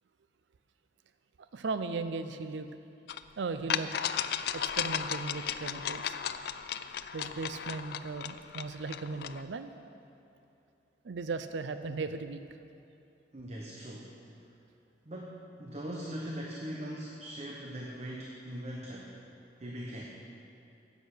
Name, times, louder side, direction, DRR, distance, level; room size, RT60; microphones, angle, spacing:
voice 1, 1.5-2.7 3.4-3.9 4.5-6.2 7.1-9.7 11.0-12.4, right 4 dB, 85° right, 10 dB, 0.5 m, -37 dB
sound 1, 3.1-3.2 3.7-9.4, left 9 dB, 60° left, 0.4 m, -35 dB
voice 2, 13.3-14.1 15.0-19.2 19.6-20.0, equal, 35° right, -2 dB, 0.9 m, -40 dB
10.0 x 8.3 x 6.6 m, 2.7 s
head